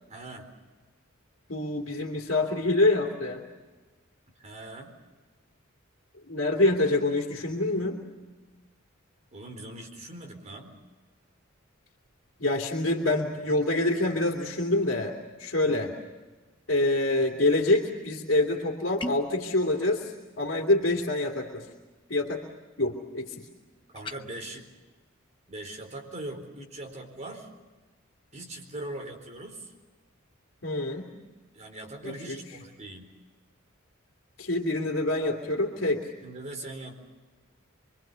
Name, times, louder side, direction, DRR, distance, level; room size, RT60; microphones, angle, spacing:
voice 1, 0.1-0.5 4.4-5.0 9.3-10.8 15.6-16.0 23.9-24.7 25.5-27.5 28.3-29.7 31.5-33.1 36.2-36.9, right 1 dB, 35° right, 3 dB, 4.2 m, -41 dB
voice 2, 1.5-3.4 6.3-8.0 12.4-15.9 16.7-21.7 22.1-22.4 22.8-23.5 30.6-31.1 32.0-32.4 34.4-36.0, left 2 dB, 65° left, 0 dB, 2.8 m, -26 dB
sound 1, 19.0-19.4 23.9-24.2, left 1 dB, 25° left, 1.0 m, -35 dB
26.0 x 24.0 x 7.0 m, 1.2 s
head